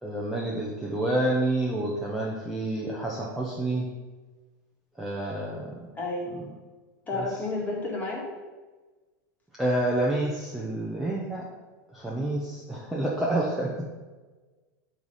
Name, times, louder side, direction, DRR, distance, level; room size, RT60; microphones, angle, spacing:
voice 1, 0.0-3.9 5.0-5.8 6.3-6.5 7.1-7.2 9.6-11.4 11.9-13.9, right 1 dB, 5° right, -4 dB, 0.8 m, -28 dB
voice 2, 5.9-6.3 7.1-8.3, left 2 dB, 15° left, -2 dB, 1.8 m, -31 dB
9.3 x 3.3 x 5.6 m, 1.3 s
supercardioid pair, 150°, 10 cm